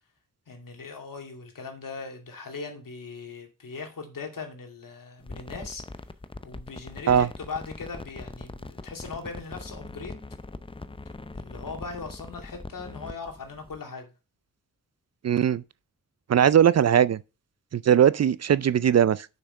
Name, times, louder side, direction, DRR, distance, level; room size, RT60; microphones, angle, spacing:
voice 1, 0.5-5.8 6.4-10.2 11.3-14.1, left 4 dB, 70° left, 2.5 m, -39 dB
sound 1, 5.2-13.8, left 2 dB, 15° left, 0.6 m, -41 dB
voice 2, 15.2-15.6 16.3-17.2 17.7-19.3, right 9 dB, 50° right, 0.4 m, -20 dB
6.7 x 6.0 x 5.2 m
cardioid pair, 75°, 35 cm